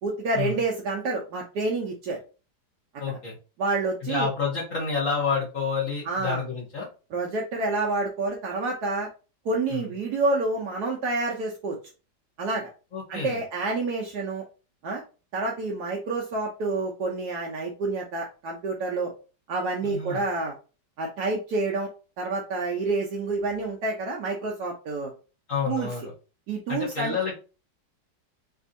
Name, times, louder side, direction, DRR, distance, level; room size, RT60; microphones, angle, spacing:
voice 1, 0.0-2.2 3.6-4.3 6.1-6.4 7.1-9.1 9.4-11.8 12.4-12.7 13.1-14.4 14.8-15.0 15.3-19.1 19.5-20.5 21.0-21.9 22.2-25.1 25.7-25.9 26.5-27.2, right 3 dB, 70° right, 0 dB, 1.1 m, -28 dB
voice 2, 3.0-3.4 4.0-6.9 9.7-9.9 12.9-13.4 19.8-20.2 25.5-26.1 26.7-27.4, left 5 dB, 50° left, -5 dB, 1.3 m, -29 dB
3.4 x 2.6 x 2.5 m, 0.34 s
omnidirectional pair, 1.9 m